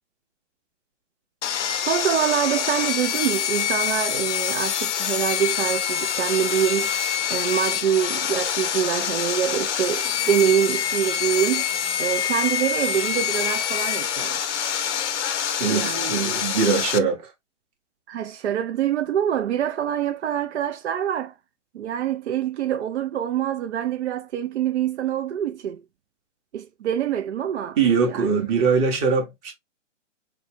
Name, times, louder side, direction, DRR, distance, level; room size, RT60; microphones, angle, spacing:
Sawing, 1.4-17.0, left 9 dB, 70° left, 0.6 m, -26 dB
voice 1, 1.8-6.9 7.3-11.7 12.0-14.5 15.7-16.2 18.1-21.3 21.7-25.8 26.5-27.8 28.1-28.4, right 9 dB, 65° right, 0.5 m, -25 dB
voice 2, 15.6-17.3 27.8-29.5, right 5 dB, 20° right, 0.8 m, -22 dB
4.1 x 2.2 x 3.2 m
hypercardioid pair, 145°, 37 cm